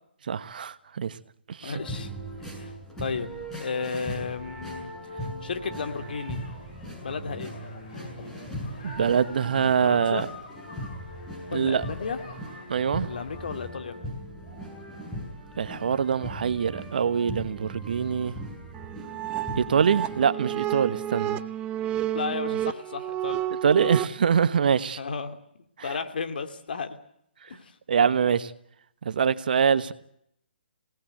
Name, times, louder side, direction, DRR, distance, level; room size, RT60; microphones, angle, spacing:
voice 1, 0.3-1.1 1.5-1.7 8.8-10.2 11.5-11.8 12.7-13.1 15.6-18.4 19.6-21.4 23.6-25.0 27.9-28.5 29.0-29.9, right 7 dB, 55° right, 1.3 m, -24 dB
voice 2, 1.6-2.1 2.4-3.3 3.6-6.4 7.0-7.5 9.8-10.2 11.5-12.2 13.0-14.0 22.1-23.4 23.8-24.0 25.0-25.4 25.8-27.0 27.5-27.7, left 5 dB, 60° left, 2.5 m, -33 dB
sound 1, 1.7-20.3, equal, 5° left, 6.8 m, -39 dB
sound 2, 5.7-13.7, left 3 dB, 45° left, 8.0 m, -46 dB
sound 3, 18.7-24.1, right 12 dB, 20° right, 0.8 m, -31 dB
25.5 x 18.5 x 7.9 m
figure-of-eight pair, 140°, 6 cm